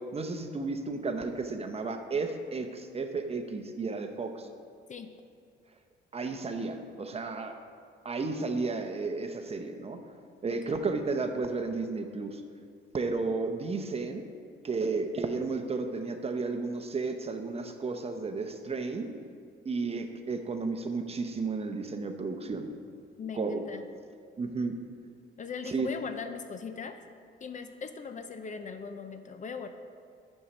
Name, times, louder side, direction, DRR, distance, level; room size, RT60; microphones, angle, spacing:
voice 1, 0.0-4.5 6.1-7.5 8.0-10.0 10.4-12.4 12.9-14.2 14.6-19.1 19.6-22.7 23.3-23.6 24.4-24.8 25.7-25.9, right 3 dB, 30° right, 6 dB, 0.8 m, -33 dB
voice 2, 23.2-23.8 25.4-27.0 27.4-29.7, left 5 dB, 40° left, 8 dB, 0.5 m, -39 dB
7.1 x 5.5 x 6.0 m, 2.2 s
cardioid pair, 90°, 20 cm